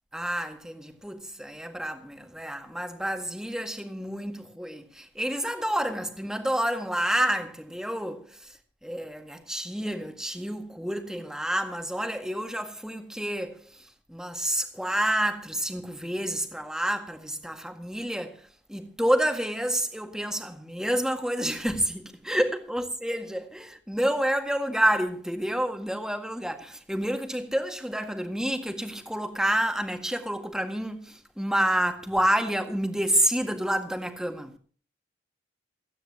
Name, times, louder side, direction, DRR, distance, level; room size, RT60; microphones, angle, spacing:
voice 1, 0.1-8.5 8.8-13.6 14.1-34.5, right 1 dB, 5° right, 1.8 m, -29 dB
28.5 x 9.7 x 2.9 m
head